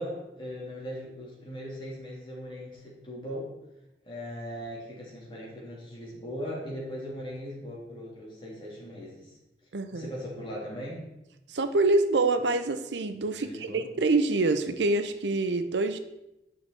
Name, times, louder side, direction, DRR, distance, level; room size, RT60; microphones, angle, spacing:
voice 1, 0.0-3.5 4.0-9.4 9.9-11.0 13.4-13.8, equal, 30° left, -5 dB, 3.0 m, -39 dB
voice 2, 9.7-10.1 11.5-16.0, right 3 dB, 90° right, 9 dB, 0.7 m, -26 dB
9.2 x 6.1 x 4.7 m, 0.91 s
head